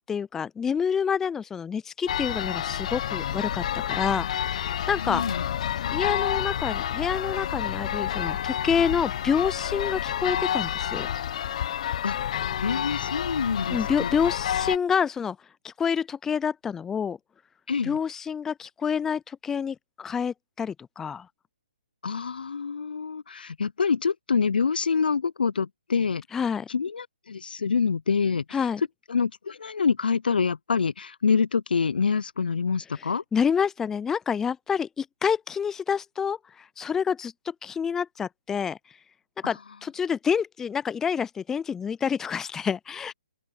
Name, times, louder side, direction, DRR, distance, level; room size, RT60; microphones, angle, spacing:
voice 1, 0.1-5.2 5.9-11.1 13.7-15.4 15.6-17.2 17.8-21.3 26.3-26.7 28.5-28.8 33.3-38.8 39.4-43.1, left 7 dB, 10° left, 0.4 m, -28 dB
sound 1, 2.1-14.8, left 10 dB, 45° left, 1.2 m, -29 dB
voice 2, 5.0-5.5 12.0-12.2 12.6-14.1 17.7-18.0 22.0-26.2 26.7-28.7 29.1-33.2 39.4-39.5, left 5 dB, 75° left, 0.6 m, -26 dB
open air
hypercardioid pair, 145°, 5 cm